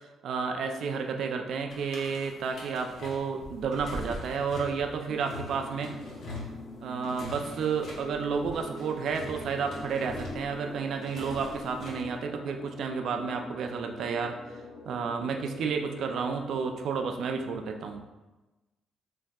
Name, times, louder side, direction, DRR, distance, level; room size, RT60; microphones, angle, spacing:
voice 1, 0.2-5.9 6.8-14.4 14.9-18.1, right 5 dB, 70° right, 4 dB, 0.3 m, -31 dB
sound 1, 1.7-12.1, left 1 dB, 65° left, 0.8 m, -43 dB
sound 2, 5.1-17.6, left 1 dB, 35° left, 0.4 m, -44 dB
3.4 x 2.6 x 2.3 m, 1.1 s
cardioid pair, 90°, 0 cm